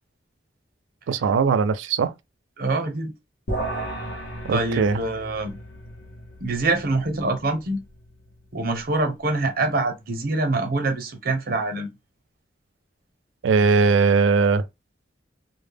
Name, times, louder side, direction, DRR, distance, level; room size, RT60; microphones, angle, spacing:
voice 1, 1.1-2.1 4.4-5.0 13.4-14.6, right 5 dB, 90° right, 0.4 m, -19 dB
voice 2, 2.6-3.1 4.5-5.6 6.4-7.8 8.5-11.9, right 2 dB, 50° right, 0.6 m, -25 dB
sound 1, 3.5-9.0, right 1 dB, 70° left, 0.7 m, -35 dB
2.0 x 2.0 x 3.3 m
head